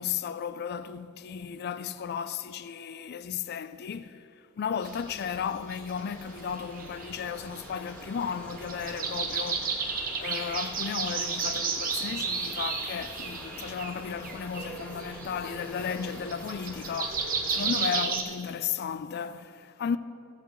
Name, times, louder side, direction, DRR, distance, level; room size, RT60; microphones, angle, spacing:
voice 1, 0.0-4.3 4.6-20.0, left 7 dB, 50° left, 0.3 m, -34 dB
sound 1, 4.8-18.2, right 5 dB, 45° right, 0.9 m, -33 dB
sound 2, 5.9-17.8, equal, 10° left, 1.6 m, -46 dB
15.0 x 8.1 x 3.1 m
head